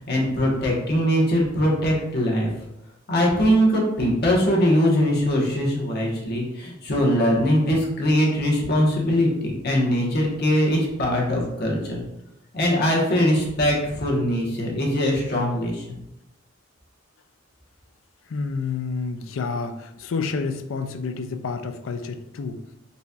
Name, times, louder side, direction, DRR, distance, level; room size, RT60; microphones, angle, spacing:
voice 1, 0.1-2.5 3.1-12.0 12.5-16.0, equal, 55° left, -2 dB, 1.1 m, -21 dB
voice 2, 18.3-22.6, left 4 dB, 75° left, 7 dB, 0.4 m, -29 dB
4.1 x 4.0 x 2.3 m, 0.84 s
head